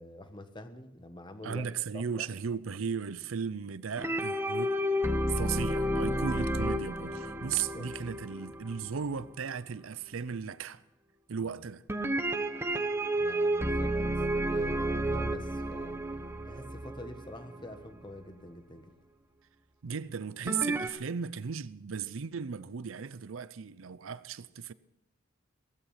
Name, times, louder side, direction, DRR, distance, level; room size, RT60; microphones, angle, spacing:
voice 1, 0.0-1.6 1.9-2.3 7.5-7.9 11.4-11.6 13.1-13.9 14.5-16.0 16.4-18.9, left 1 dB, 25° left, 1.4 m, -46 dB
voice 2, 1.4-4.8 5.3-10.8 11.3-11.8 19.8-24.7, right 6 dB, 85° right, 0.6 m, -36 dB
sound 1, 4.0-9.3 11.9-17.8 20.5-20.9, right 1 dB, 10° right, 1.0 m, -31 dB
16.5 x 15.5 x 5.7 m
head